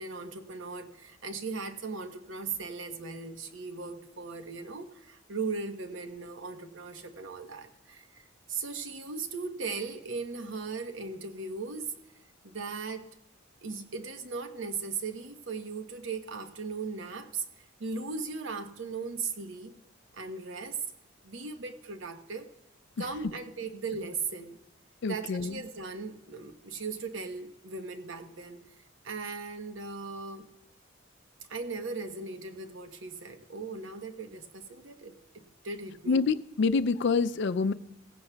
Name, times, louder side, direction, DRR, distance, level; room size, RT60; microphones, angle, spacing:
voice 1, 0.0-8.2 8.5-11.9 12.4-13.1 13.6-19.7 20.1-20.8 21.2-22.5 23.0-24.6 25.1-28.7 29.0-30.5 31.5-36.2, right 4 dB, 70° right, 7 dB, 1.0 m, -38 dB
voice 2, 25.0-25.6 36.1-37.7, left 4 dB, 60° left, 13 dB, 0.4 m, -27 dB
17.5 x 15.5 x 2.3 m, 0.89 s
head